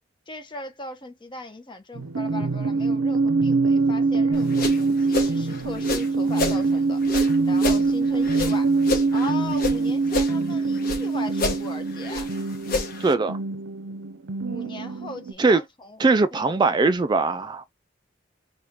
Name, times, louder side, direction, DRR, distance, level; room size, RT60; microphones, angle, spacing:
voice 1, 0.3-7.0 7.5-8.8 9.1-12.3 14.4-16.0 16.3-16.8, left 2 dB, 25° left, 0.9 m, -38 dB
sound 1, 1.9-15.3, right 3 dB, 85° right, 0.6 m, -24 dB
sound 2, 4.3-6.6 7.0-9.8 10.0-11.0 11.3-13.1, left 3 dB, 50° left, 1.0 m, -29 dB
voice 2, 13.0-13.4 15.4-15.6 16.0-17.7, right 3 dB, 25° right, 0.3 m, -20 dB
4.9 x 2.4 x 2.9 m
head